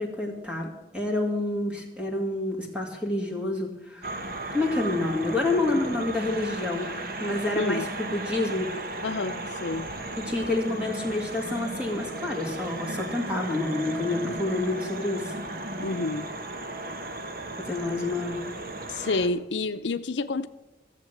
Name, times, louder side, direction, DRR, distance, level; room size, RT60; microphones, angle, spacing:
voice 1, 0.0-4.2 4.5-8.7 10.2-15.4 17.6-18.4, left 2 dB, 5° right, 0 dB, 2.4 m, -28 dB
sound 1, 4.0-19.3, right 2 dB, 50° right, 1.2 m, -35 dB
voice 2, 7.6-7.9 9.0-9.9 15.8-16.3 18.9-20.5, left 3 dB, 90° left, 11 dB, 0.6 m, -29 dB
14.5 x 7.5 x 7.6 m, 0.96 s
head